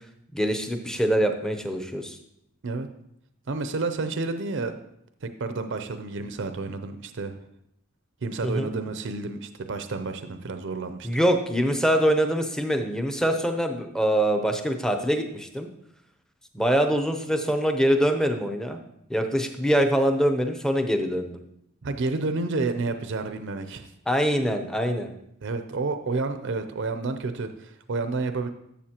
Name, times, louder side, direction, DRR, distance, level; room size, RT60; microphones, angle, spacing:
voice 1, 0.3-2.2 8.4-8.7 11.0-15.7 16.5-18.8 19.1-21.4 24.1-25.1, equal, 5° left, 5 dB, 0.7 m, -24 dB
voice 2, 3.5-4.7 5.2-7.4 8.2-11.2 21.8-23.9 25.4-28.5, right 3 dB, 60° right, 8 dB, 0.5 m, -30 dB
12.0 x 7.1 x 2.9 m, 0.77 s
head